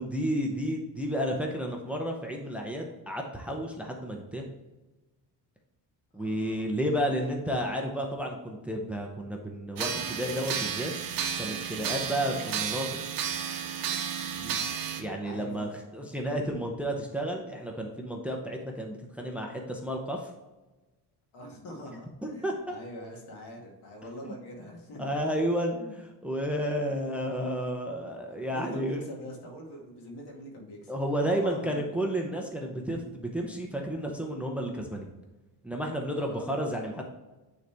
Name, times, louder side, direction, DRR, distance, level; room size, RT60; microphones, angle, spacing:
voice 1, 0.0-4.4 6.1-10.9 11.4-12.9 15.0-20.2 22.2-22.7 24.2-24.3 25.0-25.8 26.2-29.0 30.9-35.1 35.6-37.0, equal, 5° right, 1 dB, 0.6 m, -31 dB
voice 2, 6.1-6.7 14.3-14.6 15.2-15.8 21.3-25.1 25.8-26.0 28.5-30.9 31.2-32.0 36.1-36.5, equal, 80° left, 0 dB, 2.2 m, -43 dB
sound 1, 9.8-15.0, right 7 dB, 60° right, 1.0 m, -32 dB
9.4 x 4.0 x 3.4 m, 1.1 s
cardioid pair, 165°, 40 cm